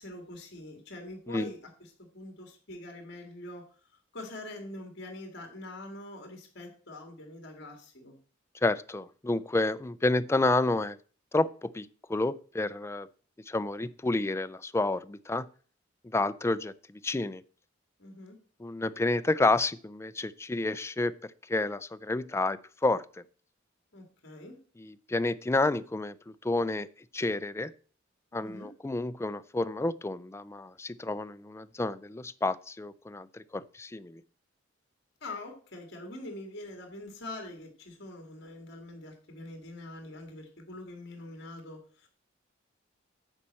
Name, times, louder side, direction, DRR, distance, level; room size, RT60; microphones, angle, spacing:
voice 1, 0.0-3.6 4.1-8.2 18.0-18.4 23.9-24.6 28.3-28.7 35.2-42.1, left 2 dB, 55° left, 3 dB, 2.0 m, -44 dB
voice 2, 8.6-11.0 11.3-13.1 13.5-15.5 16.0-16.7 17.0-17.4 18.6-21.1 21.5-23.0 24.8-26.1 26.4-26.9 27.1-27.7 28.3-34.2, left 2 dB, 15° left, 14 dB, 0.3 m, -30 dB
9.9 x 4.2 x 7.5 m, 0.40 s
head